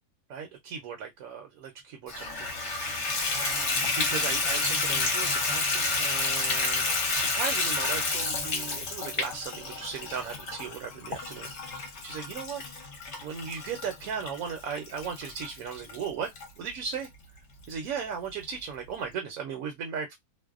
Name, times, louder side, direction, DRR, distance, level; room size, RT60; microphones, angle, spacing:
voice 1, 0.3-3.0 3.3-6.9 7.1-12.6 13.2-17.1 17.7-20.1, right 6 dB, 70° right, 1.0 m, -37 dB
Water tap faucet / Bathtub (filling or washing), 2.1-16.5 17.0-17.1 17.6-17.7 18.0-18.1, left 3 dB, 55° left, 1.0 m, -30 dB
2.6 x 2.1 x 2.3 m
omnidirectional pair, 1.6 m